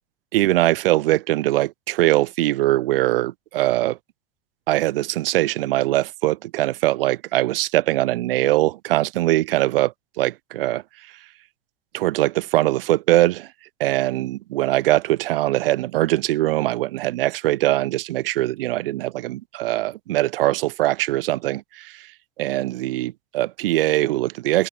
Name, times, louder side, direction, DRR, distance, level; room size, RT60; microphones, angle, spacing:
voice 1, 0.3-4.0 4.7-10.8 11.9-13.5 13.8-21.9 22.4-24.7, right 16 dB, 65° right, 0.5 m, -22 dB
figure-of-eight pair, 70°, 31 cm